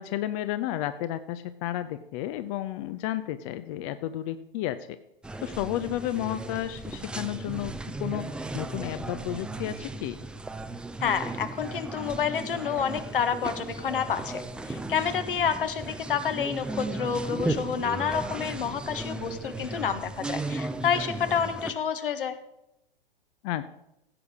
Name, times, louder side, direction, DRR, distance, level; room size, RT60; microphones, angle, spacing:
voice 1, 0.0-5.0 5.4-7.7 8.0-10.2 23.4-23.7, left 13 dB, 35° left, 12 dB, 0.6 m, -32 dB
sound 1, 5.2-21.7, right 2 dB, 5° right, 0.5 m, -35 dB
voice 2, 11.0-22.4, left 7 dB, 65° left, 10 dB, 1.4 m, -29 dB
16.0 x 8.0 x 4.9 m, 0.83 s
figure-of-eight pair, 110°, 29 cm